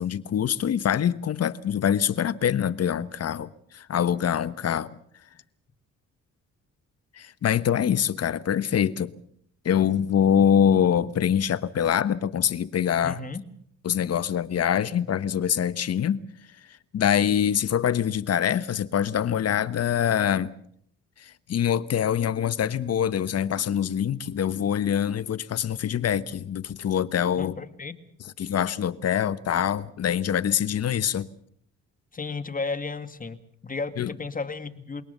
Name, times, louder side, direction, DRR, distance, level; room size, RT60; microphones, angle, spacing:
voice 1, 0.0-4.9 7.1-9.1 9.6-13.2 13.8-16.2 16.9-20.5 21.2-27.5 28.4-31.3 34.0-34.1, left 9 dB, 55° left, 1.2 m, -24 dB
voice 2, 13.0-13.4 27.4-27.9 32.1-35.0, left 4 dB, 25° left, 2.0 m, -33 dB
27.5 x 18.5 x 6.7 m
cardioid pair, 90°, 30 cm